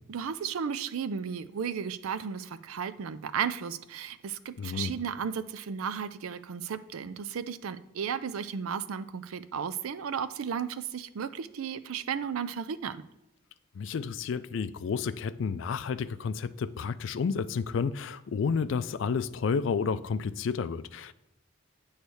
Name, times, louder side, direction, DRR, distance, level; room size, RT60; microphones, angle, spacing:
voice 1, 0.1-13.0, right 7 dB, 85° right, 0.4 m, -34 dB
voice 2, 4.6-4.9 13.7-21.1, left 5 dB, 60° left, 0.3 m, -31 dB
8.2 x 3.2 x 6.2 m
head